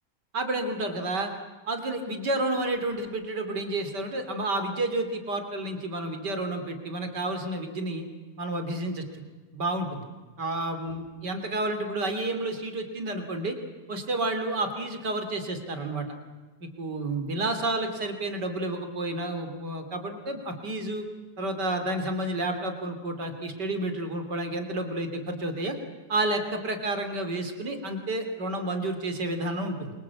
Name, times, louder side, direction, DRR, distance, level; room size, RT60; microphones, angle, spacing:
voice 1, 0.3-1.3 1.7-8.0 8.4-9.0 9.5-10.1 10.4-13.6 13.9-16.1 16.6-21.0 21.4-25.8 26.1-29.9, right 2 dB, 75° right, 7 dB, 3.8 m, -30 dB
27.0 x 25.0 x 8.4 m, 1.3 s
omnidirectional pair, 1.8 m